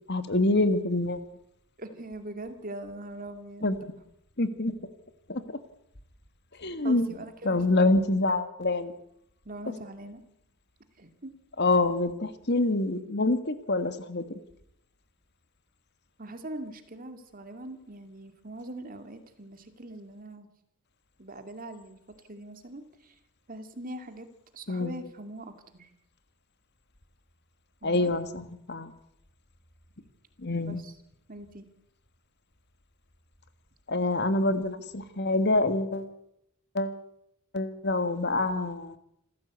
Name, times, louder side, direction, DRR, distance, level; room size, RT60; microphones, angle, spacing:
voice 1, 0.1-1.2 3.6-3.8 4.4-4.7 5.3-5.4 6.6-7.1 7.4-8.9 11.6-14.4 24.7-24.9 27.8-28.9 30.4-30.8 33.9-36.1 36.7-37.0 37.5-39.0, left 2 dB, 50° left, 11 dB, 1.7 m, -26 dB
voice 2, 1.8-3.7 6.8-8.1 9.4-10.2 11.0-11.3 16.2-20.5 21.2-23.2 23.5-24.3 24.5-25.9 27.8-28.1 30.6-30.9 31.3-31.7, right 1 dB, 40° right, 8 dB, 2.4 m, -42 dB
27.0 x 15.0 x 8.3 m, 0.78 s
head